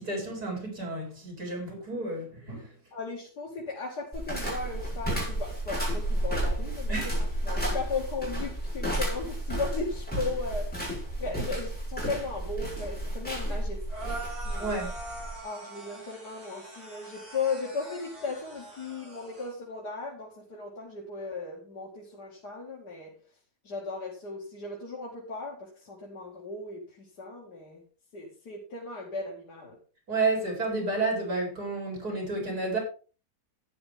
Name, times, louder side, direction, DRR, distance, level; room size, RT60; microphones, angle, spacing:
voice 1, 0.0-2.7 6.9-7.1 14.6-14.9 30.1-32.8, right 3 dB, 70° right, 5.3 m, -31 dB
voice 2, 2.9-10.9 11.2-14.7 15.4-23.2 23.6-27.8 28.1-29.8, left 4 dB, 80° left, 2.8 m, -36 dB
sound 1, 4.1-15.4, right 1 dB, 5° left, 6.1 m, -32 dB
sound 2, 13.9-19.5, right 2 dB, 45° right, 6.9 m, -43 dB
12.5 x 9.9 x 3.6 m
omnidirectional pair, 1.7 m